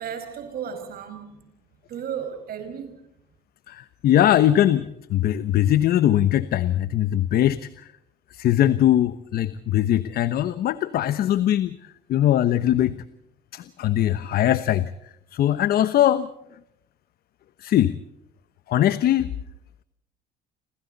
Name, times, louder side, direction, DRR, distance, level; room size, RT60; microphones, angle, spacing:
voice 1, 0.0-1.5 1.9-3.0, right 8 dB, 65° right, 5.6 m, -34 dB
voice 2, 3.7-7.9 8.3-11.8 12.1-13.0 13.5-14.9 15.3-16.3 17.6-18.0 18.7-19.3, left 12 dB, 65° left, 1.1 m, -21 dB
29.0 x 26.0 x 4.1 m
cardioid pair, 110°, 17 cm